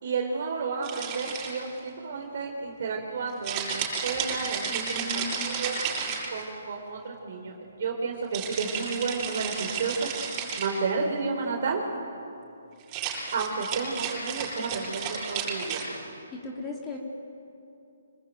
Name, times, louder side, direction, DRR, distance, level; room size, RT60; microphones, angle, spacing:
voice 1, 0.0-5.8 6.3-11.8 13.3-16.0, right 4 dB, 55° right, 0 dB, 4.1 m, -32 dB
sound 1, 0.8-1.8 3.4-6.6 8.3-10.8 12.8-15.8, right 6 dB, 30° right, 8.0 m, -33 dB
voice 2, 4.7-5.5 16.3-17.0, left 2 dB, 15° left, -1 dB, 3.3 m, -37 dB
26.5 x 20.5 x 9.2 m, 2.6 s
hypercardioid pair, 145°, 0 cm